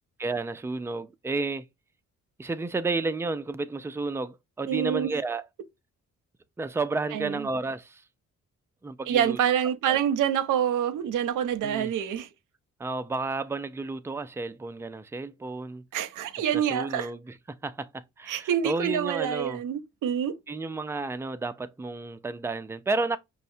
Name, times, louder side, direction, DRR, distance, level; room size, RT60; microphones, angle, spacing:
voice 1, 0.2-1.7 2.4-5.4 6.6-8.0 8.8-9.4 9.9-10.0 11.6-11.9 12.8-15.8 16.5-19.6 20.5-23.2, right 3 dB, 10° right, 0.3 m, -31 dB
voice 2, 4.7-5.1 7.1-7.5 9.1-12.3 15.9-17.1 18.3-20.4, right 9 dB, 80° right, 0.6 m, -27 dB
5.3 x 2.1 x 2.6 m
cardioid pair, 80°, 31 cm